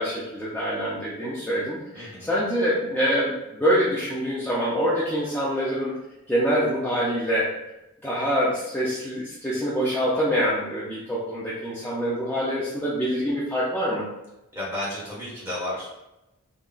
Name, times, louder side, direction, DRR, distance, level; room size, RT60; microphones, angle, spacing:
voice 1, 0.0-5.9 6.3-7.5 8.0-14.1, equal, 10° left, -8 dB, 0.4 m, -25 dB
voice 2, 1.9-2.3 14.5-16.0, left 1 dB, 10° right, -8 dB, 1.2 m, -32 dB
3.7 x 2.2 x 2.3 m, 0.94 s
head